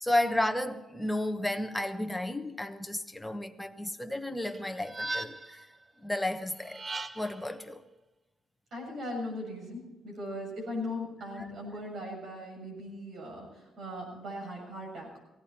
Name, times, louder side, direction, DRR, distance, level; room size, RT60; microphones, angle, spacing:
voice 1, 0.0-5.6 6.0-6.8 7.2-7.8, left 1 dB, 5° left, 1.2 m, -32 dB
sound 1, 4.4-5.6 6.6-7.5, right 2 dB, 25° right, 0.5 m, -38 dB
voice 2, 8.7-15.1, left 1 dB, 65° right, 7.4 m, -39 dB
17.5 x 16.5 x 4.4 m
cardioid pair, 90°, 0 cm